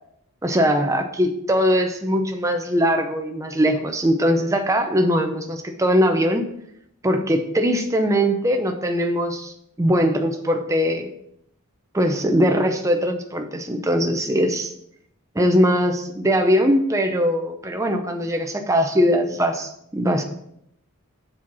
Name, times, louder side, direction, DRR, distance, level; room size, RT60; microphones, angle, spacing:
voice 1, 0.4-6.5 7.0-9.5 9.8-11.1 11.9-14.7 15.3-20.2, equal, 15° right, 4 dB, 0.6 m, -21 dB
7.3 x 4.4 x 6.0 m, 0.74 s
head